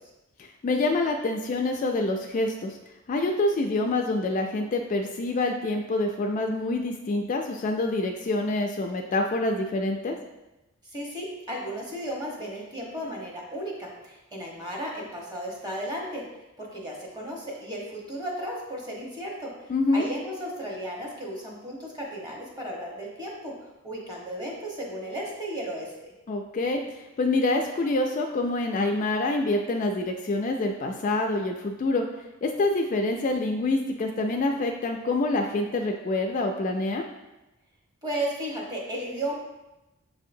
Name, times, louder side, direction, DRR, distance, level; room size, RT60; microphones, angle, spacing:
voice 1, 0.4-2.8 3.1-10.2 19.7-20.1 26.3-26.8 27.2-32.0 32.4-37.0, left 2 dB, 35° left, 3 dB, 0.3 m, -26 dB
voice 2, 10.9-16.2 16.6-19.5 19.9-23.5 23.8-25.9 38.0-39.3, right 1 dB, 20° right, -3 dB, 1.0 m, -34 dB
7.1 x 2.7 x 2.6 m, 1.0 s
head